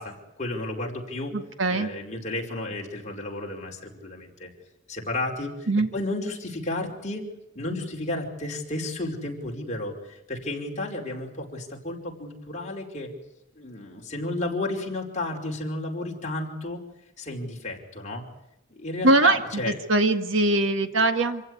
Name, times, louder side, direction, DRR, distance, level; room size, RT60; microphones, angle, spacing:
voice 1, 0.0-1.3 1.7-4.5 4.9-5.5 5.9-7.2 7.5-13.1 13.5-16.8 17.2-18.2 18.7-19.7, left 2 dB, 40° left, -1 dB, 5.0 m, -32 dB
voice 2, 1.3-1.9 5.7-5.9 19.0-19.4 19.9-21.4, right 2 dB, 75° right, 7 dB, 1.9 m, -21 dB
26.5 x 15.5 x 9.7 m, 0.86 s
head